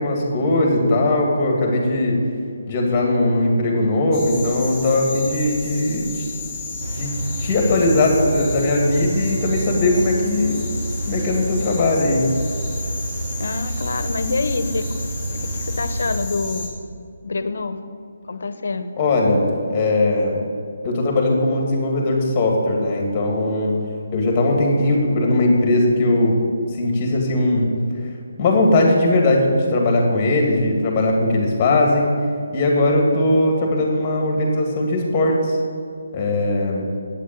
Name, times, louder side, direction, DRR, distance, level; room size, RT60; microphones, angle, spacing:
voice 1, 0.0-2.2 2.7-6.2 6.9-7.1 7.4-10.6 11.1-12.3 19.0-20.4 20.8-23.8 24.1-26.4 26.7-28.1 28.4-32.1 32.5-35.6 36.1-36.8, left 2 dB, 20° left, 0 dB, 2.4 m, -19 dB
sound 1, 4.1-16.7, left 2 dB, ahead, 2.0 m, -32 dB
sound 2, 6.8-16.2, right 1 dB, 85° right, 1.5 m, -29 dB
voice 2, 13.4-14.9 15.3-16.7 17.2-17.9 18.3-19.0, left 3 dB, 65° left, 11 dB, 0.9 m, -26 dB
8.3 x 8.2 x 9.1 m, 2.3 s
hypercardioid pair, 165°, 0 cm